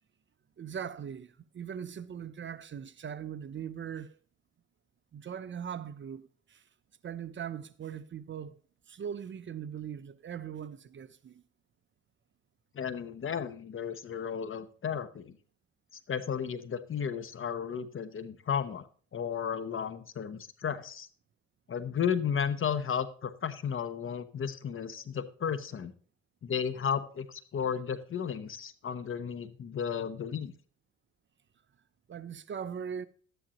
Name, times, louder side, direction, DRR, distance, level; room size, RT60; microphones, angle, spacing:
voice 1, 0.6-4.1 5.1-6.6 7.0-8.6 8.9-11.4 32.1-33.1, right 8 dB, 40° right, 0.6 m, -40 dB
voice 2, 12.7-15.4 16.1-18.9 19.1-21.1 21.7-25.9 26.4-30.5, left 7 dB, 45° left, 0.9 m, -34 dB
12.5 x 10.0 x 3.0 m
cardioid pair, 90°, 30 cm